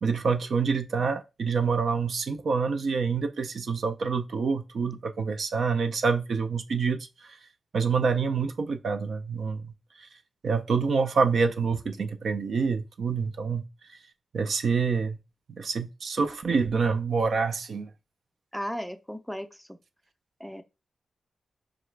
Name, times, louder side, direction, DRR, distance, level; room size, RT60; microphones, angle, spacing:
voice 1, 0.0-7.4 7.7-10.1 10.4-14.0 14.3-15.2 15.6-17.9, right 5 dB, 70° right, 0.4 m, -27 dB
voice 2, 18.5-19.8 20.4-20.6, equal, ahead, 0.4 m, -36 dB
4.8 x 2.3 x 3.2 m
cardioid pair, 75°, 0 cm